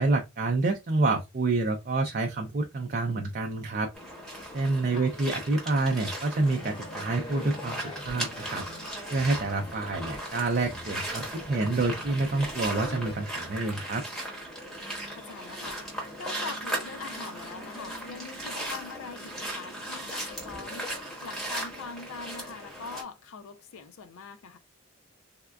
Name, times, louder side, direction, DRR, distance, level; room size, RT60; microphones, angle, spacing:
voice 1, 0.0-3.9 4.5-8.6 9.1-14.0, right 3 dB, 40° right, 0.4 m, -28 dB
sound 1, 3.9-23.0, right 1 dB, ahead, 0.9 m, -37 dB
sound 2, 6.3-13.1, equal, 25° left, 0.5 m, -43 dB
voice 2, 15.1-20.9 21.2-24.6, left 5 dB, 80° left, 0.4 m, -42 dB
3.5 x 2.3 x 2.2 m
head